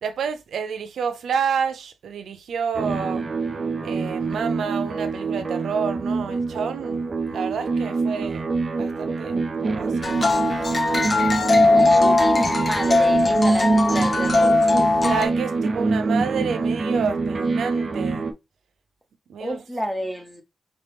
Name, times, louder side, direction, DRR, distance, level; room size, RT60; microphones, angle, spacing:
voice 1, 0.0-3.2 3.8-8.5 8.7-10.5 15.0-18.3 19.3-19.6, right 6 dB, 85° right, 0.5 m, -29 dB
sound 1, 2.7-18.3, right 3 dB, 35° right, 0.5 m, -25 dB
sound 2, 10.0-15.3, left 3 dB, 25° left, 0.4 m, -19 dB
voice 2, 11.7-14.6 19.4-20.4, equal, ahead, 0.8 m, -30 dB
3.7 x 2.9 x 3.4 m
wide cardioid pair, 165°, 0 cm